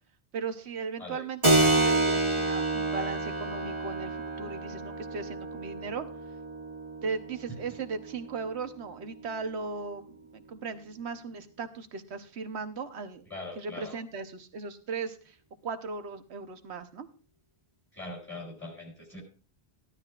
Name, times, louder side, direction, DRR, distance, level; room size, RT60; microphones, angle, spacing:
voice 1, 0.3-6.1 7.0-13.2 13.6-15.4 15.6-17.1, right 5 dB, 80° right, 9 dB, 1.2 m, -37 dB
Keyboard (musical), 1.4-9.6, right 2 dB, 25° right, 1.8 m, -29 dB
voice 2, 13.3-14.0 17.9-19.2, left 2 dB, 10° left, 0 dB, 4.1 m, -41 dB
15.5 x 11.5 x 2.4 m, 0.40 s
omnidirectional pair, 1.1 m